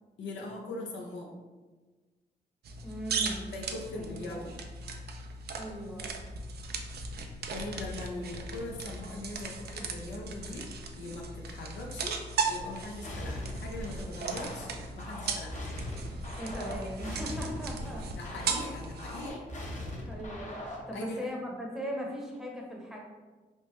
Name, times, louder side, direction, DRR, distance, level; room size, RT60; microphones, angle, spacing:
voice 1, 0.2-1.3 3.5-4.6 7.5-10.7 11.0-12.2 12.5-15.6 18.2-19.4 20.9-21.2, left 2 dB, 80° left, -1 dB, 0.5 m, -41 dB
sound 1, 2.6-19.3, right 4 dB, 60° right, 0.4 m, -37 dB
voice 2, 2.8-3.5 3.9-4.4 5.5-6.1 16.4-18.0 20.0-20.6 20.9-23.0, equal, ahead, -2 dB, 0.8 m, -38 dB
sound 2, 13.0-20.9, left 1 dB, 40° left, 0.8 m, -40 dB
3.2 x 2.0 x 3.0 m, 1.3 s
supercardioid pair, 50°, 18 cm